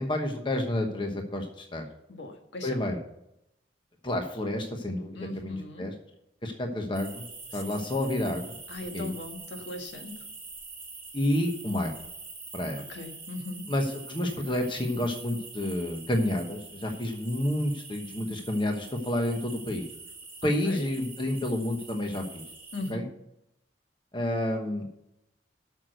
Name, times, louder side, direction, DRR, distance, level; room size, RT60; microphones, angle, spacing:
voice 1, 0.0-1.8 2.6-3.0 4.0-5.9 6.4-7.2 7.5-8.6 8.9-9.1 11.1-11.9 12.5-12.8 13.7-19.9 20.4-22.4 22.9-23.0 24.1-24.9, left 1 dB, 25° left, 4 dB, 1.1 m, -29 dB
voice 2, 2.1-2.8 5.1-5.9 7.5-7.6 8.7-10.2 12.8-13.7 20.6-20.8 22.7-23.1, left 2 dB, 75° left, 4 dB, 1.6 m, -39 dB
sound 1, 6.9-22.9, right 4 dB, 10° right, 2.3 m, -45 dB
8.5 x 6.4 x 7.8 m, 0.84 s
head